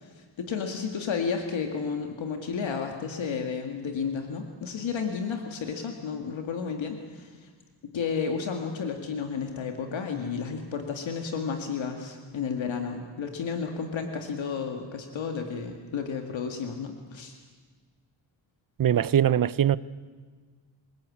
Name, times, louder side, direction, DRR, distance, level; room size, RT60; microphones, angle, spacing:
voice 1, 0.0-7.5 7.9-17.4, left 6 dB, 80° left, 2.1 m, -32 dB
voice 2, 18.8-19.8, right 10 dB, 45° right, 0.7 m, -22 dB
27.5 x 18.5 x 8.6 m
wide cardioid pair, 105°, 45 cm